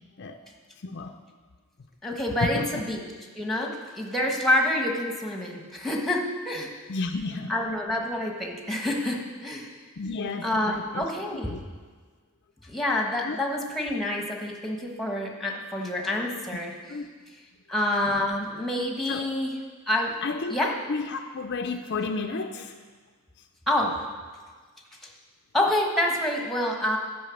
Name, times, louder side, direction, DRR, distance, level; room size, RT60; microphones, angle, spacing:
voice 1, 0.8-1.1 2.4-2.8 6.9-7.5 10.0-11.0 11.5-11.6 13.2-13.4 16.9-17.1 19.1-19.2 20.2-20.6 20.9-22.7, left 3 dB, 50° left, 5 dB, 0.5 m, -31 dB
voice 2, 2.0-3.0 3.3-6.7 7.5-9.7 10.4-11.5 12.6-16.7 17.7-19.5 19.9-20.1 20.5-20.7 23.7-23.9 25.0-25.1 25.5-27.0, left 1 dB, ahead, 0 dB, 1.2 m, -27 dB
10.5 x 5.6 x 7.1 m, 1.5 s
head